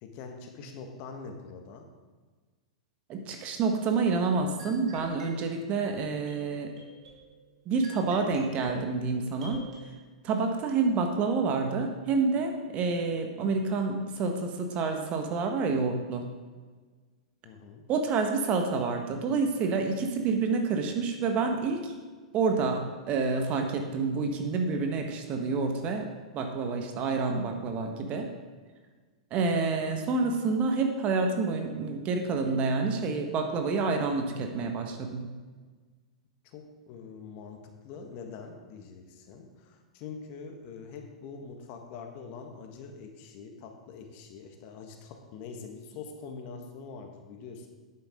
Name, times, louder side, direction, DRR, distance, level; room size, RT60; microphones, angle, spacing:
voice 1, 0.0-1.9 17.4-17.8 36.4-47.7, left 5 dB, 45° left, 4 dB, 1.6 m, -44 dB
voice 2, 3.1-6.7 7.6-9.6 10.2-16.3 17.9-21.9 22.3-26.1 26.3-28.3 29.3-35.2, right 4 dB, 35° right, 4 dB, 1.5 m, -28 dB
sound 1, 4.6-9.8, right 2 dB, 70° right, 2.8 m, -48 dB
10.5 x 8.8 x 3.8 m, 1.4 s
hypercardioid pair, 100°, 4 cm